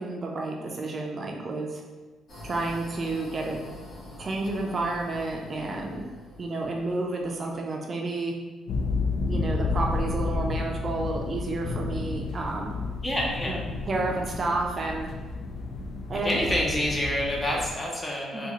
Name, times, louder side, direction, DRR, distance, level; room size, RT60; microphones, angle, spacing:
voice 1, 0.0-1.8 2.4-3.6 4.2-6.1 6.4-8.3 9.3-12.7 13.5-13.6 13.9-15.1 16.1-16.3 18.3-18.5, right 2 dB, 40° right, 0 dB, 0.4 m, -30 dB
sound 1, 2.3-7.3, left 1 dB, 50° left, 1.4 m, -45 dB
sound 2, 8.7-17.7, left 3 dB, 65° left, 0.4 m, -31 dB
voice 2, 13.0-13.6 16.2-18.5, left 1 dB, 20° left, -2 dB, 0.8 m, -27 dB
3.6 x 2.4 x 3.0 m, 1.3 s
cardioid pair, 90°, 0 cm